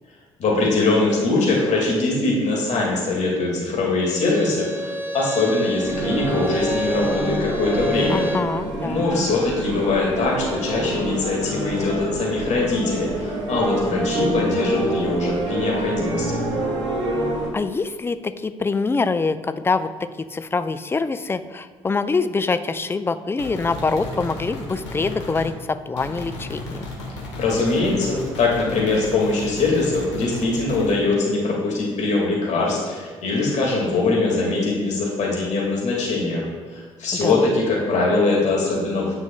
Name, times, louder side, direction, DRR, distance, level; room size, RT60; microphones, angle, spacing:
voice 1, 0.4-8.3 8.8-16.4 27.4-39.1, left 3 dB, 50° left, -3 dB, 1.9 m, -22 dB
Bowed string instrument, 4.0-8.5, right 1 dB, 15° right, 1.8 m, -29 dB
sound 1, 5.8-17.5, right 1 dB, 80° right, 0.9 m, -27 dB
voice 2, 8.1-9.0 17.5-26.9 37.1-37.6, left 4 dB, 15° left, 12 dB, 0.4 m, -25 dB
sound 2, 23.4-25.5 26.0-30.9, left 2 dB, 80° left, 1.1 m, -34 dB
9.6 x 6.2 x 2.2 m, 1.5 s
figure-of-eight pair, 45°, 15 cm